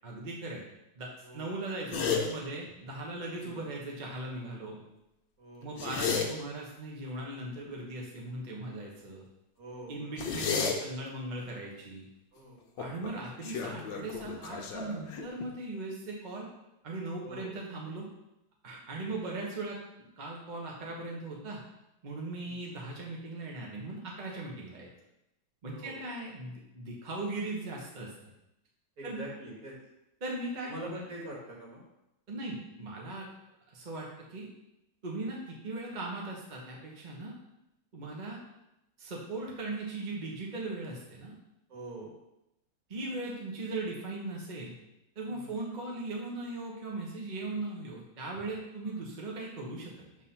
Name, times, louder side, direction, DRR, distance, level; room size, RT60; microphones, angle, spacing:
voice 1, 0.0-0.6 1.0-4.8 5.6-9.2 9.9-12.1 12.8-16.5 16.8-18.1 18.6-21.6 22.0-24.9 25.6-28.1 29.0-29.2 30.2-31.0 32.3-33.3 33.7-34.5 35.0-37.3 37.9-38.4 39.0-41.3 42.9-44.7 45.1-49.9, right 2 dB, 30° right, -2 dB, 0.9 m, -39 dB
sound 1, 1.9-2.2 5.6-6.3 10.2-10.7 12.8-13.1 13.4-15.5, left 6 dB, 70° left, 1.5 m, -32 dB
voice 2, 2.0-2.3 3.3-3.6 5.4-5.8 9.6-10.3 12.3-12.6 13.2-13.3 17.2-17.6 22.4-22.6 25.7-26.0 29.0-29.8 30.7-31.8 41.7-42.2 45.3-45.6, right 1 dB, 45° right, -3 dB, 2.0 m, -44 dB
7.2 x 3.7 x 5.6 m, 0.88 s
omnidirectional pair, 2.2 m